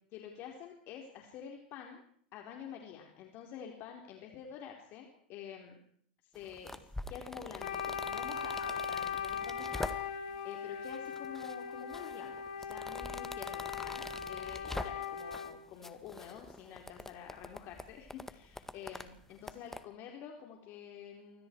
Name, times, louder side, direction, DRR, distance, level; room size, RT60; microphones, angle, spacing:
voice 1, 0.1-2.0 2.3-5.8 6.2-21.5, left 8 dB, 50° left, 2 dB, 4.4 m, -48 dB
sound 1, 6.3-10.4 10.8-11.5 11.9-15.5 15.8-19.8, left 2 dB, 5° left, 1.9 m, -44 dB
Wind instrument woodwind instrument, 7.6-15.6, left 7 dB, 70° left, 3.3 m, -39 dB
28.5 x 25.0 x 4.8 m, 0.62 s
hypercardioid pair, 110°, 5 cm